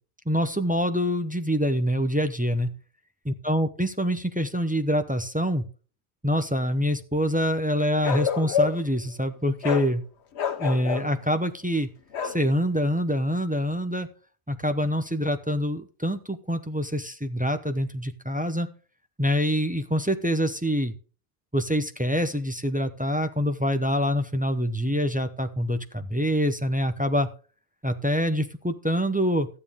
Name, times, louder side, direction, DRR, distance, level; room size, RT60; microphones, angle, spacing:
voice 1, 0.3-2.7 3.2-5.6 6.2-10.0 10.6-11.9 12.2-14.1 14.5-18.7 19.2-20.9 21.5-27.3 27.8-29.5, equal, 10° right, 7 dB, 0.6 m, -25 dB
Bark, 8.0-8.9 9.6-9.9 10.4-11.1 12.1-12.4, left 7 dB, 80° left, 1.1 m, -27 dB
13.0 x 8.8 x 3.6 m, 0.37 s
omnidirectional pair, 1.1 m